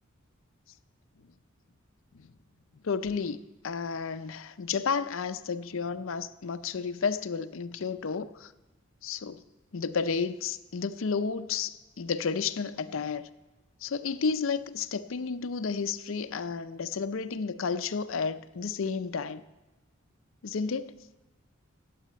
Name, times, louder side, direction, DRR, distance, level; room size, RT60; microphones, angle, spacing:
voice 1, 2.8-3.4 3.6-8.5 9.0-9.4 9.7-13.3 13.8-19.4 20.4-20.9, left 5 dB, 65° left, 0.5 m, -32 dB
12.0 x 8.5 x 8.6 m
head